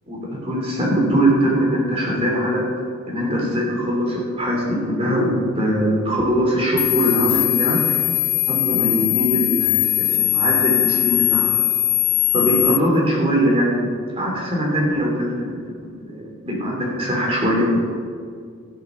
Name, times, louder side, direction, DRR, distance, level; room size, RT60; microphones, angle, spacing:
voice 1, 0.1-2.6 3.1-5.3 5.5-7.8 8.5-11.5 12.3-13.9 14.1-15.6 16.0-17.8, equal, 25° right, -3 dB, 2.9 m, -21 dB
sound 1, 6.8-12.8, left 16 dB, 80° left, 0.5 m, -20 dB
13.0 x 7.9 x 6.2 m, 2.2 s
head